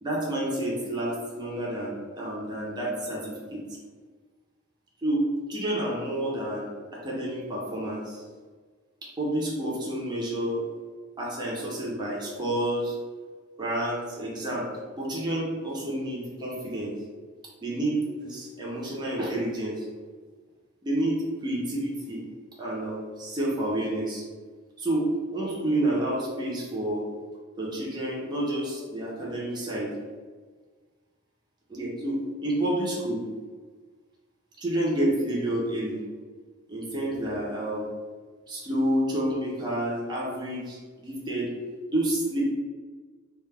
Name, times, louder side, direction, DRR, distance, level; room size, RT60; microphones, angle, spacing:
voice 1, 0.0-3.6 5.0-5.2 5.5-8.2 9.0-10.6 11.2-13.0 13.6-14.7 14.9-16.9 17.6-19.9 20.8-22.2 22.6-24.3 24.8-27.0 27.6-29.9 31.7-33.2 34.6-36.0 36.7-37.9 38.5-41.5 41.9-42.4, right 1 dB, 20° right, -5 dB, 0.5 m, -29 dB
2.2 x 2.1 x 3.2 m, 1.5 s
head